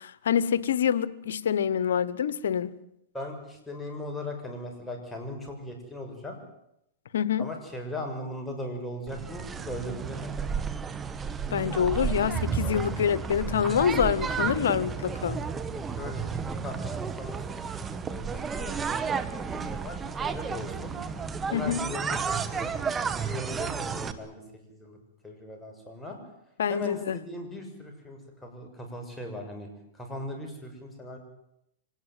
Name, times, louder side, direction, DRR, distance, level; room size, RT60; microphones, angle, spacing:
voice 1, 0.0-2.7 7.1-7.5 11.5-15.4 21.5-21.8 26.6-27.2, left 8 dB, 80° left, 1.3 m, -26 dB
voice 2, 3.1-6.4 7.4-10.5 15.8-21.0 21.5-22.8 23.1-24.4 24.7-25.0 25.2-26.2 26.7-29.7 29.9-31.2, left 1 dB, 10° left, 6.7 m, -39 dB
sound 1, 9.1-24.1, right 6 dB, 20° right, 1.7 m, -32 dB
25.5 x 18.5 x 9.2 m
hypercardioid pair, 130°, 0 cm